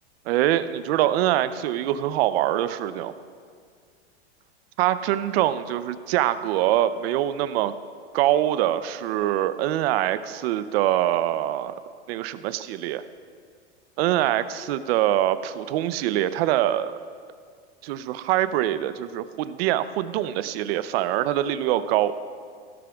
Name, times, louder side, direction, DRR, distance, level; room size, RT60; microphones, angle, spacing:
voice 1, 0.3-3.1 4.8-7.7 8.1-11.7 12.1-13.0 14.0-16.9 17.8-22.1, right 13 dB, 60° right, 13 dB, 0.6 m, -24 dB
16.0 x 13.0 x 2.4 m, 2.1 s
supercardioid pair, 125°, 35 cm